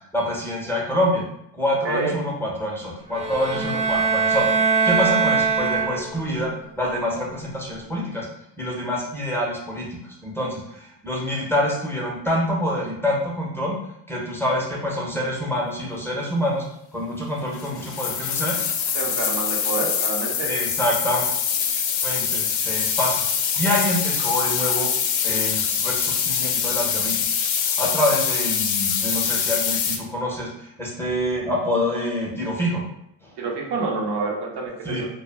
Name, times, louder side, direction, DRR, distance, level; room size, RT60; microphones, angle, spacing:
voice 1, 0.1-1.2 1.5-6.5 6.8-8.3 8.6-13.8 14.1-16.6 16.9-18.6 20.4-21.3 22.0-23.2 23.6-24.9 25.2-32.8 33.2-33.3 34.8-35.0, left 1 dB, 5° left, -4 dB, 0.7 m, -26 dB
sound 1, 3.1-6.3, right 5 dB, 15° right, 0.3 m, -22 dB
sound 2, 17.5-30.0, left 7 dB, 70° left, 0.5 m, -24 dB
voice 2, 18.9-20.5 33.4-35.1, right 3 dB, 55° right, -1 dB, 0.7 m, -27 dB
2.1 x 2.1 x 3.3 m, 0.78 s
cardioid pair, 80°, 48 cm